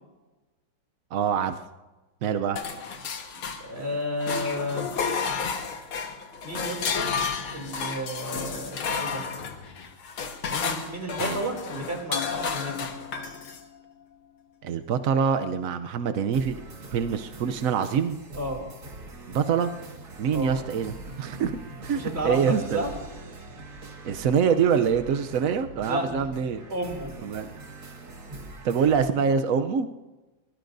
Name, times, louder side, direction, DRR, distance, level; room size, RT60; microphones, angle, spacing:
voice 1, 1.1-1.6 2.2-2.6 11.2-11.4 14.6-16.6 16.9-18.2 19.3-19.7 20.2-21.6 21.8-22.8 24.0-26.6 27.2-27.5 28.6-29.9, right 7 dB, 75° right, 8 dB, 0.7 m, -25 dB
sound 1, 2.6-3.9 4.2-13.6, left 5 dB, 85° left, 2.2 m, -31 dB
voice 2, 3.3-4.9 6.4-7.1 7.5-9.3 10.5-12.9 18.3-18.7 20.3-20.6 21.9-22.9 25.9-26.1 26.7-27.1, equal, 30° right, 1 dB, 3.0 m, -32 dB
sound 2, 16.3-29.1, right 2 dB, 50° right, 2.3 m, -43 dB
24.5 x 21.0 x 2.6 m, 1.2 s
omnidirectional pair, 2.2 m